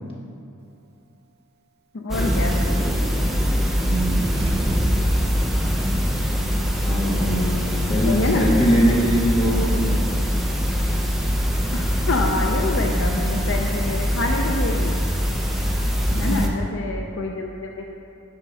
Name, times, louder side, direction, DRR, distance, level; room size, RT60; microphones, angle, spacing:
voice 1, 1.9-2.6 7.2-8.4 11.7-15.0 16.2-17.9, left 3 dB, 60° left, 1 dB, 0.5 m, -27 dB
sound 1, 2.1-16.5, equal, ahead, 0.5 m, -22 dB
voice 2, 3.8-4.4 6.8-7.4 7.9-10.2 16.1-16.6, equal, 25° left, -5 dB, 1.5 m, -22 dB
Car / Engine starting / Idling, 3.9-7.4, right 1 dB, 50° right, 0.6 m, -33 dB
8.9 x 5.1 x 5.6 m, 2.7 s
head